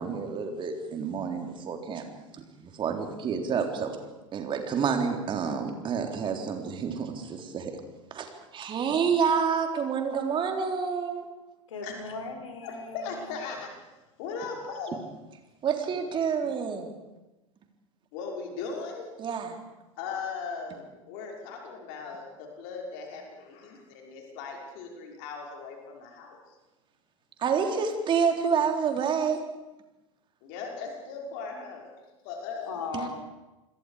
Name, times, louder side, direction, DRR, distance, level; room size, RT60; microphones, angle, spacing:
voice 1, 0.0-2.1 2.6-3.9 4.3-7.7 8.1-8.3 8.5-11.3 15.6-16.9 19.2-19.6 27.4-29.4 32.9-33.1, right 6 dB, 30° right, 4 dB, 3.6 m, -28 dB
voice 2, 11.7-13.3 32.6-33.1, left 4 dB, 70° left, 6 dB, 4.2 m, -37 dB
voice 3, 12.6-13.7 14.2-15.0 18.1-19.1 20.0-26.4 30.4-31.9 32.2-32.7, left 5 dB, 50° left, 0 dB, 5.6 m, -38 dB
28.0 x 21.5 x 5.0 m, 1.0 s
figure-of-eight pair, 85°, 17 cm